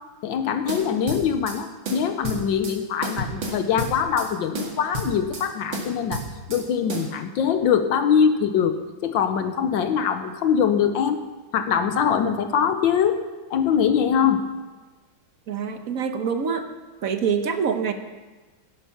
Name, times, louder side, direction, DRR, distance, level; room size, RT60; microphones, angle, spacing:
voice 1, 0.2-6.2 6.5-8.8 9.0-11.2 11.5-13.2 13.5-14.4, left 7 dB, 80° left, 8 dB, 1.5 m, -22 dB
sound 1, 0.7-1.6 1.9-2.8 3.0-4.3 4.6-5.5 5.7-6.6 6.9-7.1, right 1 dB, 80° right, 2.9 m, -31 dB
voice 2, 15.5-16.6 17.0-17.9, right 6 dB, 50° right, 7 dB, 1.2 m, -25 dB
13.0 x 11.0 x 5.9 m, 1.3 s
omnidirectional pair, 2.1 m